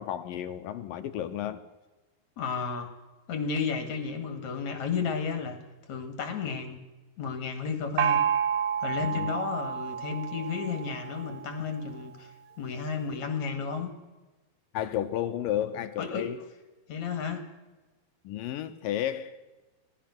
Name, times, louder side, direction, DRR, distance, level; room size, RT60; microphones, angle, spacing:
voice 1, 0.0-1.6 9.0-9.3 14.7-16.4 18.2-19.4, left 11 dB, 75° left, 2.2 m, -32 dB
voice 2, 2.4-2.9 3.3-5.6 5.9-6.8 7.2-8.2 8.8-13.9 16.0-16.3 16.9-17.5, left 5 dB, 50° left, 2.9 m, -32 dB
Gong, 8.0-11.5, right 9 dB, 75° right, 1.7 m, -29 dB
26.0 x 17.0 x 6.1 m
omnidirectional pair, 4.7 m